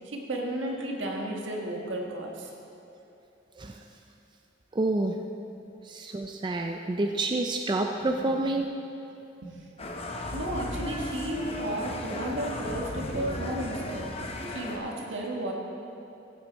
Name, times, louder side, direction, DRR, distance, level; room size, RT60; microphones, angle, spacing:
voice 1, 0.0-2.5 8.0-8.4 9.4-9.5 10.3-15.5, right 1 dB, 80° right, 0 dB, 1.5 m, -33 dB
voice 2, 4.7-5.2 5.8-8.7, right 2 dB, 25° right, 3 dB, 0.4 m, -28 dB
sound 1, 9.8-14.8, left 1 dB, 30° left, 0.8 m, -35 dB
15.0 x 7.7 x 4.0 m, 2.8 s
head